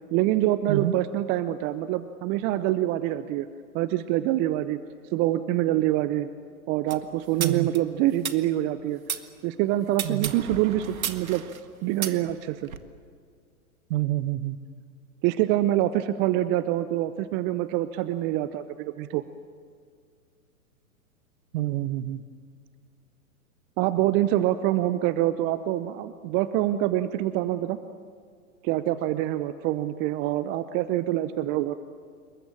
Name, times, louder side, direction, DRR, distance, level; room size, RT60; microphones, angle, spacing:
voice 1, 0.1-3.5 3.7-4.8 5.1-6.3 6.7-9.0 9.4-11.4 11.8-12.7 15.2-19.2 23.8-27.8 28.6-31.8, right 14 dB, 25° right, 13 dB, 0.7 m, -25 dB
sound 1, 6.9-9.2 9.9-12.8, right 8 dB, 70° right, 1.8 m, -34 dB
voice 2, 7.4-7.7 10.0-10.3 13.9-14.6 21.5-22.2, right 15 dB, 40° right, 14 dB, 1.2 m, -27 dB
27.5 x 23.0 x 7.2 m, 2.1 s
figure-of-eight pair, 110°, 43 cm